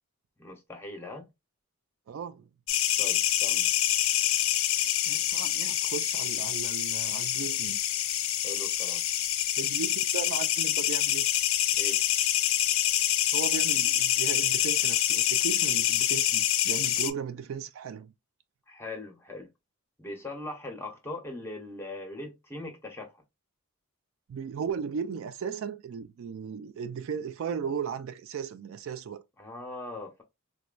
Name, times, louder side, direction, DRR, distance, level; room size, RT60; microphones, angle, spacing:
voice 1, 0.4-1.2 3.0-3.7 8.4-9.0 11.7-12.0 18.7-19.5 20.0-23.2 29.4-30.2, left 2 dB, 10° left, 0.7 m, -40 dB
voice 2, 2.1-2.5 5.1-7.8 9.6-11.3 13.3-18.1 24.3-29.2, right 7 dB, 60° right, 0.3 m, -36 dB
sound 1, 2.7-17.1, left 12 dB, 65° left, 0.4 m, -26 dB
4.2 x 2.2 x 2.4 m
head